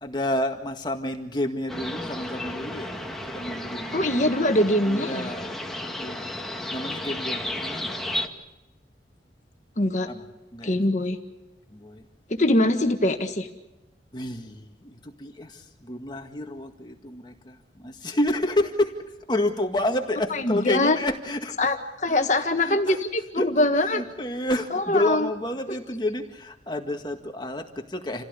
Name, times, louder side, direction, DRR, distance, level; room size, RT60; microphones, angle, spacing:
voice 1, 0.0-2.9 3.3-4.2 4.8-5.6 6.0-6.3 6.7-7.9 10.1-10.3 10.5-10.8 11.7-12.0 14.1-18.9 19.3-21.6 22.1-23.0 23.4-28.2, left 1 dB, 25° left, 4 dB, 1.9 m, -29 dB
sound 1, 1.7-8.3, left 1 dB, ahead, 1.9 m, -33 dB
voice 2, 3.9-5.3 9.8-10.1 10.6-11.2 12.3-13.5 20.3-21.0 21.6-24.0 24.7-25.3, left 1 dB, 40° left, 6 dB, 1.5 m, -23 dB
28.0 x 16.0 x 8.4 m, 0.97 s
head